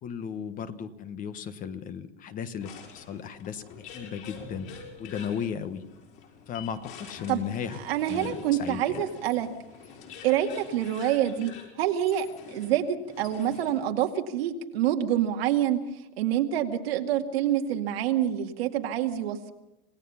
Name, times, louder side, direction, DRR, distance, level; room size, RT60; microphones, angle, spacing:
voice 1, 0.0-4.7 5.0-5.8 6.5-7.8 8.1-9.0, left 7 dB, 25° left, 12 dB, 1.2 m, -35 dB
sound 1, 2.6-13.9, left 5 dB, 45° left, 5.9 m, -46 dB
voice 2, 7.8-9.5 10.2-11.5 11.8-15.8 16.2-19.5, right 11 dB, 90° right, 4 dB, 2.3 m, -26 dB
27.0 x 17.5 x 5.7 m, 0.94 s
supercardioid pair, 160°, 29 cm